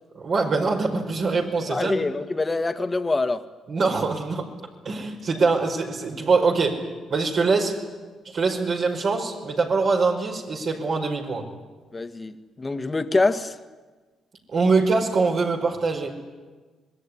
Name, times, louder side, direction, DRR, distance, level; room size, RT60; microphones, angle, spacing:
voice 1, 0.1-2.0 3.7-4.5 4.8-7.8 8.2-11.5 14.5-16.2, right 4 dB, 55° right, 1 dB, 5.1 m, -23 dB
voice 2, 1.7-3.5 11.9-13.6, left 3 dB, 25° left, 9 dB, 1.8 m, -25 dB
26.5 x 20.5 x 10.0 m, 1.3 s
supercardioid pair, 70°, 0 cm